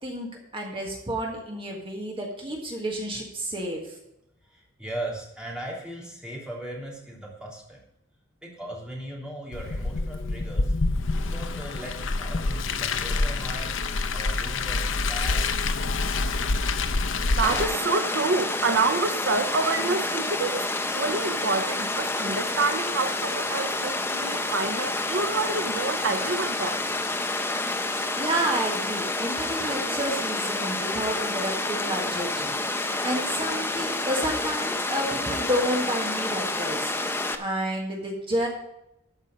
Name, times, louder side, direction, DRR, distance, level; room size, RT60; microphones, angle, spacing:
voice 1, 0.0-3.9 27.9-38.5, right 1 dB, 30° right, 0 dB, 1.7 m, -30 dB
voice 2, 4.4-7.8 8.4-10.8 11.1-13.7 14.1-15.6, right 1 dB, 5° right, -4 dB, 3.2 m, -38 dB
Car, 9.5-17.6, left 3 dB, 85° left, 0.7 m, -27 dB
voice 3, 17.3-26.8, right 3 dB, 80° right, 8 dB, 0.8 m, -27 dB
Water, 17.4-37.4, left 2 dB, 10° left, 0.8 m, -29 dB
13.0 x 5.4 x 6.3 m, 0.84 s
head